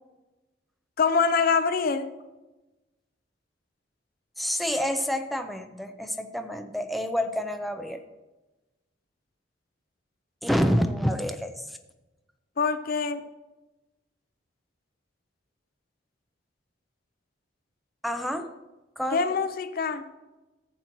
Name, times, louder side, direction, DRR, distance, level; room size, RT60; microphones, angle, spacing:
voice 1, 1.0-2.1 12.6-13.2 19.1-20.0, left 5 dB, 50° left, 11 dB, 0.5 m, -24 dB
voice 2, 4.4-8.0 10.4-11.8 18.0-18.5 19.0-19.2, equal, ahead, 6 dB, 0.5 m, -28 dB
14.0 x 7.8 x 3.0 m, 1.1 s
head